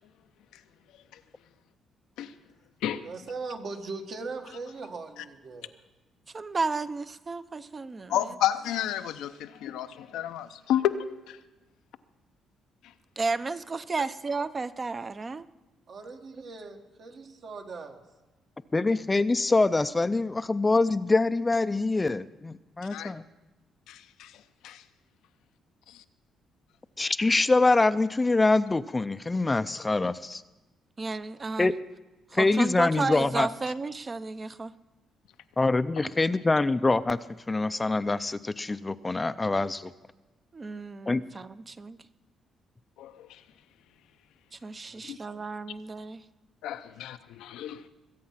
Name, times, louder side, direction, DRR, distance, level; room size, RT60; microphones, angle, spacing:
voice 1, 3.0-5.7 15.9-18.0 44.8-45.5, right 3 dB, 60° right, 1.7 m, -40 dB
voice 2, 6.3-8.1 13.2-15.4 31.0-31.7 32.3-34.7 36.0-36.1 40.5-42.0 44.6-46.2, right 3 dB, 30° right, 0.6 m, -32 dB
voice 3, 8.1-11.4 22.9-23.1 23.9-24.8 25.9-26.0 43.0-43.4 45.1-45.2 46.6-47.9, left 11 dB, 90° left, 0.6 m, -31 dB
voice 4, 18.7-23.2 27.0-30.4 31.6-31.7 32.3-33.5 35.6-37.2 37.5-39.9 41.1-41.2, left 3 dB, 20° left, 0.4 m, -24 dB
21.5 x 8.5 x 5.8 m
cardioid pair, 90°, 0 cm